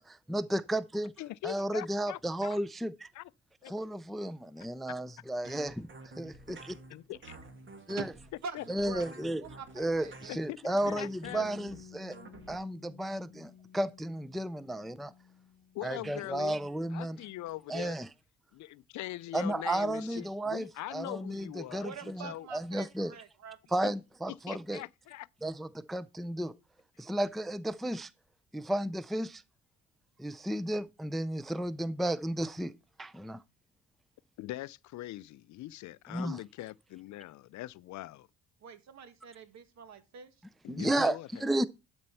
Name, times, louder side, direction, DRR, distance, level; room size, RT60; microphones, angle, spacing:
voice 1, 0.1-1.1 1.4-3.1 3.7-5.9 6.2-6.7 7.9-8.1 8.7-9.4 9.8-12.2 12.5-15.1 15.8-17.2 17.7-18.1 19.3-23.1 23.7-24.8 25.4-26.5 27.0-28.1 28.5-29.4 30.2-32.7 33.0-33.4 36.1-36.4 40.7-41.7, right 1 dB, ahead, 0.4 m, -33 dB
voice 2, 1.2-2.6 3.2-3.3 3.6-3.7 6.9-7.4 8.6-8.7 10.3-10.4 10.6-11.5 15.8-16.6 16.9-17.9 18.5-21.9 22.2-22.5 23.8-23.9 24.5-25.3 34.4-38.3 40.6-41.3, left 16 dB, 70° left, 0.4 m, -42 dB
sound 1, 5.4-12.6, right 2 dB, 40° right, 1.9 m, -50 dB
voice 3, 8.4-10.3 21.8-23.6 38.6-40.3, right 5 dB, 65° right, 1.6 m, -45 dB
Bass guitar, 11.2-17.5, left 8 dB, 40° left, 0.8 m, -55 dB
12.0 x 4.4 x 5.6 m
cardioid pair, 90°, 30 cm